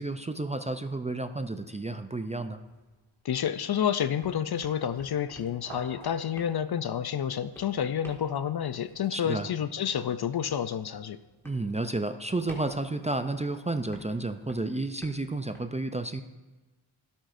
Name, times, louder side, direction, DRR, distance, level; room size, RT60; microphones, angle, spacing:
voice 1, 0.0-2.6 9.1-9.5 11.4-16.2, right 2 dB, 15° right, 8 dB, 0.4 m, -31 dB
sound 1, 2.7-3.8 4.0-15.6, equal, 5° left, 2.0 m, -53 dB
voice 2, 3.2-11.2, left 9 dB, 50° left, 13 dB, 0.5 m, -29 dB
sound 2, 3.7-3.8 5.5-6.8, right 1 dB, 75° right, 2.8 m, -49 dB
12.0 x 11.5 x 2.6 m, 1.2 s
cardioid pair, 70°, 49 cm